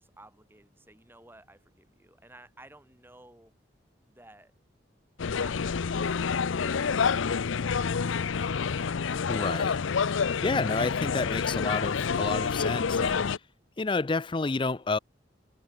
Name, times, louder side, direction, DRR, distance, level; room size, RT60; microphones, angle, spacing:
voice 1, 0.0-3.5 4.1-4.5 5.2-8.3, right 1 dB, 10° right, 4.8 m, -55 dB
sound 1, 5.2-13.4, left 6 dB, 90° left, 0.6 m, -28 dB
voice 2, 9.3-9.8 10.4-13.3 13.8-15.0, left 3 dB, 25° left, 0.5 m, -30 dB
head